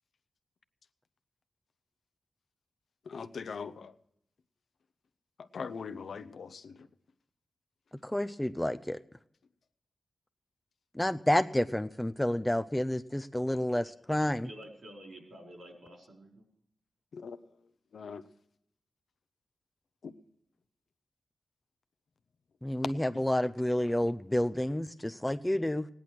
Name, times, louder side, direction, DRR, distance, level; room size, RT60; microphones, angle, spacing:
voice 1, 3.1-3.9 5.5-6.7 17.1-17.4 17.9-18.2 20.0-20.1, left 5 dB, 70° left, 11 dB, 0.7 m, -41 dB
voice 2, 8.0-9.0 11.0-14.5 22.6-25.9, left 1 dB, 10° left, 9 dB, 0.4 m, -29 dB
voice 3, 14.4-16.5, right 1 dB, 65° right, 1 dB, 4.4 m, -49 dB
17.0 x 10.5 x 6.2 m, 0.73 s
wide cardioid pair, 95°, 0 cm